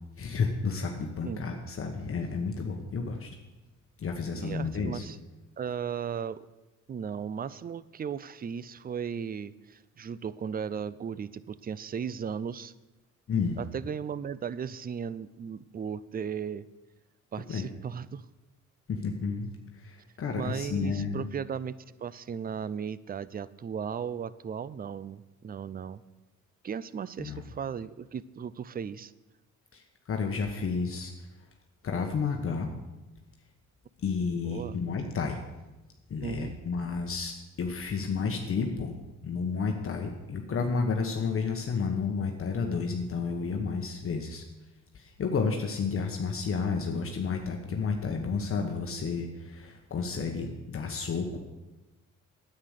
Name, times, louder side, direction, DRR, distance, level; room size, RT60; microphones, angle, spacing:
voice 1, 0.2-3.3 4.0-5.0 13.3-13.6 17.5-17.7 18.9-21.3 27.2-27.4 29.7-31.1 31.8-32.7 34.0-35.4 36.1-39.0 39.2-44.4 44.9-51.4, left 5 dB, 45° left, 3 dB, 1.2 m, -31 dB
voice 2, 4.4-5.2 5.6-6.5 6.9-12.7 13.6-16.7 17.3-18.2 20.3-26.0 26.6-29.1 34.4-34.8 36.2-36.6, right 7 dB, 30° right, 18 dB, 0.5 m, -36 dB
9.7 x 8.7 x 6.5 m, 1.1 s
cardioid pair, 90°, 30 cm